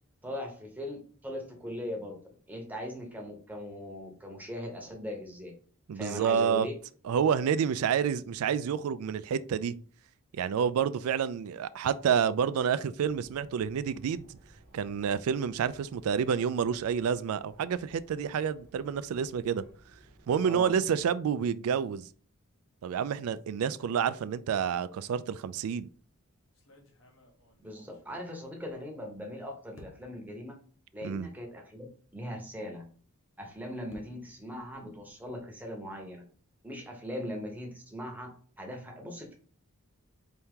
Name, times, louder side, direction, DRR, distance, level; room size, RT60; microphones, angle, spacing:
voice 1, 0.2-5.5 5.9-6.7 20.4-20.7 27.6-30.6 30.9-31.9 32.1-32.8 33.4-36.2 36.6-39.3, left 1 dB, 5° right, 0.9 m, -40 dB
voice 2, 5.9-6.7 7.0-9.7 10.3-14.3 14.7-19.6 20.3-22.1 22.8-25.9 31.0-31.3, right 7 dB, 75° right, 0.3 m, -29 dB
sound 1, 13.0-21.1, right 1 dB, 45° right, 0.9 m, -58 dB
sound 2, 25.8-26.0 26.5-29.3 29.7-30.3 31.0-31.1 31.5-31.6 33.2-35.5, equal, 60° left, 1.0 m, -59 dB
4.4 x 2.8 x 3.6 m
head